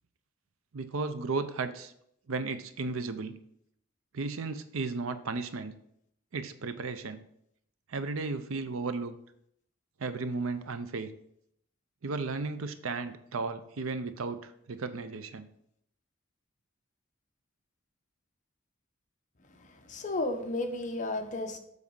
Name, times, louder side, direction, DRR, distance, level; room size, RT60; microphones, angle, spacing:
voice 1, 0.7-1.9 2.3-3.4 4.1-5.7 6.3-7.2 7.9-9.2 10.0-11.1 12.0-15.5, right 4 dB, 85° right, 0.6 m, -34 dB
voice 2, 19.6-21.6, left 2 dB, 35° left, 0.8 m, -33 dB
7.2 x 4.0 x 5.4 m
head